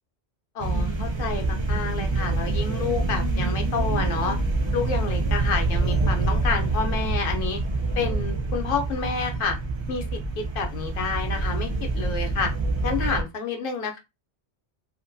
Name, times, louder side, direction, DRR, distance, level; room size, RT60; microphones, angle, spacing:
voice 1, 0.5-4.4 4.7-7.6 8.0-9.6 9.9-10.0 10.4-12.5 12.8-14.0, left 5 dB, 60° left, 5 dB, 0.7 m, -29 dB
sound 1, 0.6-13.2, right 2 dB, 45° right, 0.3 m, -26 dB
2.9 x 2.2 x 2.5 m, 0.23 s
omnidirectional pair, 1.2 m